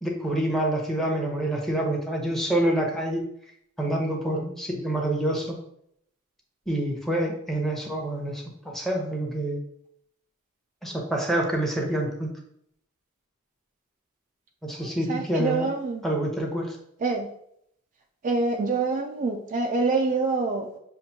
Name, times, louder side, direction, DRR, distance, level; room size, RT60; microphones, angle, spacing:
voice 1, 0.0-3.2 3.8-5.6 6.7-9.6 10.8-12.3 14.6-15.7 16.0-16.8, right 1 dB, ahead, 0 dB, 0.8 m, -27 dB
voice 2, 15.1-16.0 17.0-17.3 18.2-20.8, right 3 dB, 35° right, 3 dB, 0.3 m, -26 dB
6.6 x 2.5 x 2.7 m, 0.71 s
head